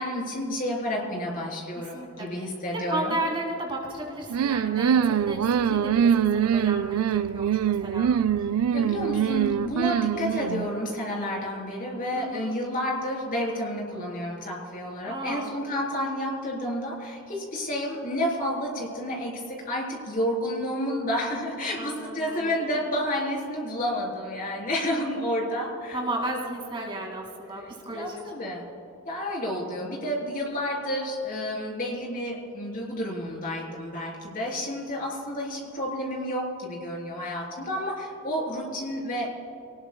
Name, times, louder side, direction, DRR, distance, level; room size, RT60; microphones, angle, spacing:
voice 1, 0.0-3.2 8.7-26.0 27.6-28.7 29.1-39.3, equal, 40° left, -2 dB, 3.6 m, -30 dB
voice 2, 1.8-2.3 2.9-5.4 5.6-8.1 12.1-12.6 15.1-15.5 21.8-22.7 25.9-28.2, right 1 dB, 25° right, -1 dB, 2.3 m, -34 dB
sound 1, 4.3-10.7, right 8 dB, 85° right, 0.4 m, -24 dB
24.5 x 19.0 x 2.3 m, 2.9 s
head